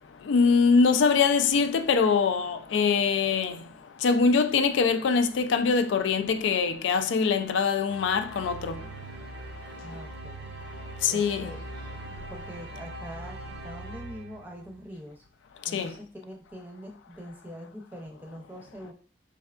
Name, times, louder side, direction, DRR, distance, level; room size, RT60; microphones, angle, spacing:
voice 1, 0.3-3.6 4.0-8.8 11.0-11.5 15.7-15.9, left 5 dB, 85° left, 0.3 m, -23 dB
sound 1, 7.9-14.9, right 2 dB, 65° right, 0.6 m, -41 dB
voice 2, 9.8-10.5 11.1-11.6 12.1-15.3 15.7-18.9, equal, 10° right, 0.6 m, -43 dB
4.4 x 3.3 x 2.4 m
head